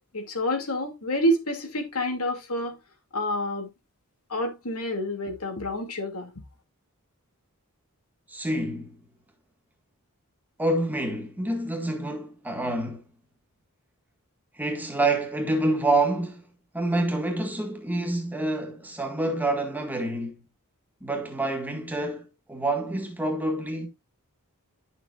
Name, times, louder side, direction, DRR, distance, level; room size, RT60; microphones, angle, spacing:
voice 1, 0.1-2.8 3.1-3.7 4.3-6.3, equal, 70° left, 2.5 m, -28 dB
voice 2, 8.3-9.0 10.6-13.0 14.6-16.5 16.7-20.4 21.0-23.9, right 2 dB, 10° right, 1.8 m, -27 dB
11.0 x 7.2 x 2.5 m
head